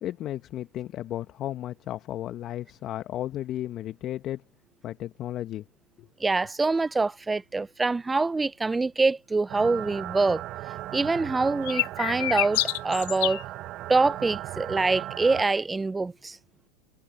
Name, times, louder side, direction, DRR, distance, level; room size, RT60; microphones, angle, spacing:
voice 1, 0.0-4.4 4.8-5.7 6.0-6.1, left 13 dB, 40° left, 1.4 m, -34 dB
voice 2, 6.2-10.4 10.9-13.4 13.9-16.4, right 3 dB, 10° right, 0.4 m, -25 dB
sound 1, 9.5-15.4, right 15 dB, 45° right, 1.4 m, -37 dB
sound 2, 11.7-13.4, left 24 dB, 60° left, 1.3 m, -27 dB
hypercardioid pair, 95°, 0 cm